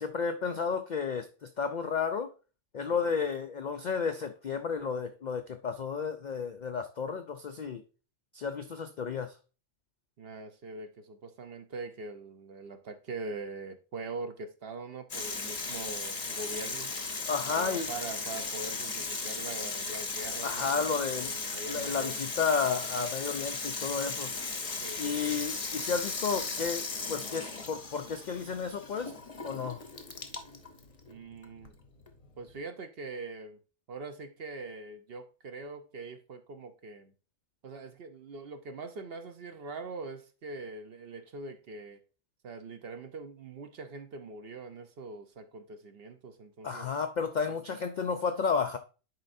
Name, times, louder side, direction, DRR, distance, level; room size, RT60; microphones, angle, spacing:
voice 1, 0.0-2.3 2.7-7.8 8.3-9.3 17.3-17.9 20.4-21.3 21.7-24.3 25.0-29.1 29.4-29.8 46.6-48.8, left 5 dB, 70° left, 0.4 m, -32 dB
voice 2, 10.2-16.9 17.5-22.3 24.8-25.3 31.1-31.7 32.4-33.6 33.9-37.1 37.6-42.0 42.4-46.9, right 3 dB, 55° right, 0.8 m, -42 dB
Water tap faucet / Sink (filling or washing), 15.1-32.6, left 4 dB, 35° left, 0.7 m, -37 dB
10.5 x 4.4 x 2.6 m
omnidirectional pair, 1.4 m